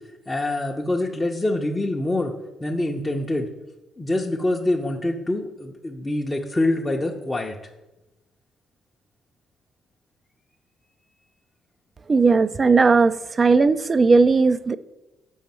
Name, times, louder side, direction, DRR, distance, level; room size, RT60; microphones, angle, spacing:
voice 1, 0.3-2.3 2.6-3.5 4.0-7.6, left 1 dB, 20° left, -1 dB, 0.7 m, -25 dB
voice 2, 12.1-14.8, right 4 dB, 35° right, 15 dB, 0.4 m, -17 dB
6.3 x 5.2 x 4.4 m, 1.0 s
figure-of-eight pair, 45°, 0 cm